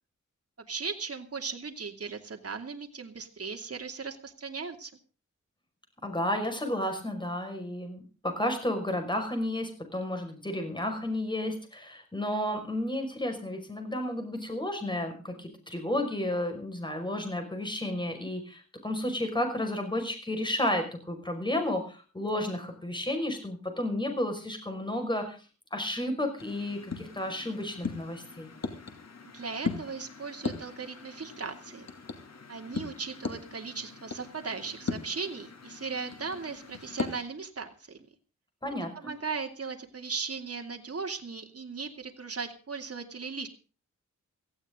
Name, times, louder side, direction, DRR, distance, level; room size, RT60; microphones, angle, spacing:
voice 1, 0.7-4.9 29.3-31.9 32.5-38.0 38.9-43.5, right 5 dB, 50° right, 4 dB, 2.7 m, -37 dB
voice 2, 6.0-25.4 25.7-28.5 38.6-39.1, left 1 dB, 15° left, 5 dB, 5.5 m, -32 dB
sound 1, 26.4-37.2, left 4 dB, 55° left, 2.7 m, -39 dB
18.0 x 15.5 x 3.8 m, 0.36 s
wide cardioid pair, 120°, 31 cm